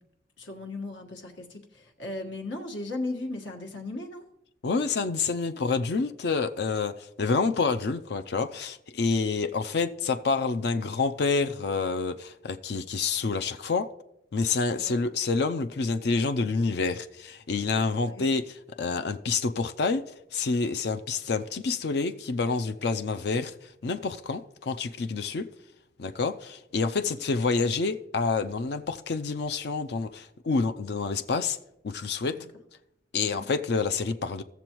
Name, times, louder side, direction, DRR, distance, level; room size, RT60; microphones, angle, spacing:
voice 1, 0.4-4.3 14.8-15.0 18.1-18.3 32.3-32.4 33.3-33.5, left 2 dB, 80° left, 1.5 m, -37 dB
voice 2, 4.6-13.9 14.3-20.0 20.3-25.4 26.0-31.6 31.8-32.4 33.1-34.4, left 4 dB, 60° left, 0.4 m, -28 dB
16.0 x 6.9 x 3.0 m
head